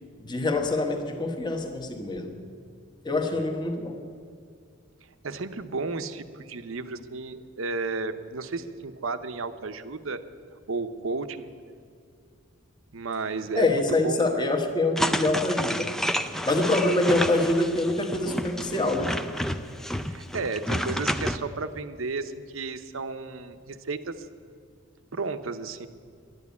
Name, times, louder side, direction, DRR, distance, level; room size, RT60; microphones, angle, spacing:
voice 1, 0.2-2.4 3.0-4.0 13.5-15.9 16.5-19.2, left 2 dB, 20° left, 4 dB, 1.1 m, -25 dB
voice 2, 5.2-10.2 10.7-11.5 12.9-14.5 16.7-16.8 20.1-24.3 25.1-25.9, right 3 dB, 75° right, 11 dB, 0.8 m, -33 dB
sound 1, 15.0-21.4, equal, ahead, 0.4 m, -30 dB
11.5 x 11.0 x 8.3 m, 2.2 s
head